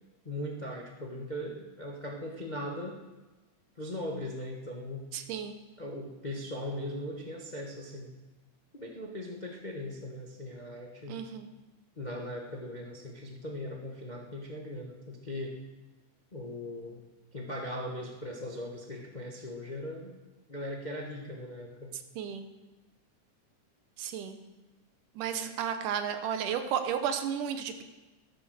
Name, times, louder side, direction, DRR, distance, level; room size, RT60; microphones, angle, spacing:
voice 1, 0.2-3.0 3.8-5.0 5.8-8.1 8.7-11.2 12.0-15.5 16.3-17.0 17.3-20.1 20.5-21.9, left 1 dB, 65° left, 0 dB, 0.4 m, -39 dB
voice 2, 5.1-5.6 11.1-11.5 22.2-22.5 24.0-24.4 25.2-27.8, right 8 dB, 85° right, 8 dB, 2.6 m, -33 dB
13.5 x 12.5 x 6.5 m, 1.1 s
omnidirectional pair, 3.6 m